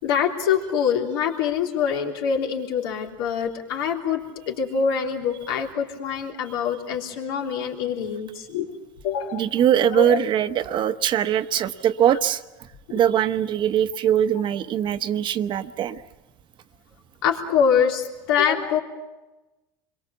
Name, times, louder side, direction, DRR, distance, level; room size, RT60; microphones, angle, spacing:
voice 1, 0.0-8.7 9.0-9.5 9.9-10.2 12.9-13.0 17.2-18.8, left 7 dB, 80° left, 1 dB, 3.4 m, -24 dB
voice 2, 9.3-12.4 12.9-16.0, right 10 dB, 40° right, 10 dB, 1.0 m, -22 dB
27.5 x 22.5 x 7.1 m, 1.1 s
supercardioid pair, 115°, 12 cm